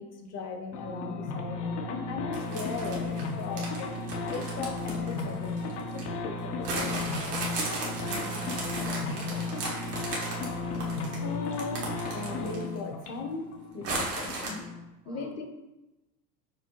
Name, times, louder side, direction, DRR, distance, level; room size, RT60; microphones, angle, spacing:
voice 1, 0.0-6.9 11.1-14.6 15.1-15.5, left 4 dB, 35° left, 5 dB, 0.6 m, -38 dB
sound 1, 0.7-14.8, left 3 dB, 75° left, 0.7 m, -34 dB
sound 2, 2.3-6.1 6.6-12.8 13.1-13.2 13.8-14.5, right 2 dB, 75° right, 1.2 m, -36 dB
voice 2, 8.0-9.7 15.0-15.4, right 4 dB, 10° right, 1 dB, 0.3 m, -46 dB
6.1 x 2.1 x 2.8 m, 1.0 s
hypercardioid pair, 90°, 48 cm